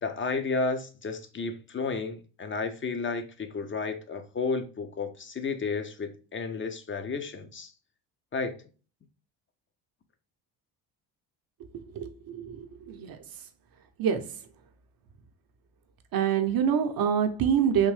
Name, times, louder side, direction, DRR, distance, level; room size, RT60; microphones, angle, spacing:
voice 1, 0.0-7.7 8.3-8.6, left 4 dB, 25° left, 0.6 m, -32 dB
voice 2, 11.9-13.2 14.0-14.3 16.1-17.9, right 8 dB, 45° right, 0.7 m, -26 dB
3.6 x 2.6 x 3.2 m
hypercardioid pair, 65°, 49 cm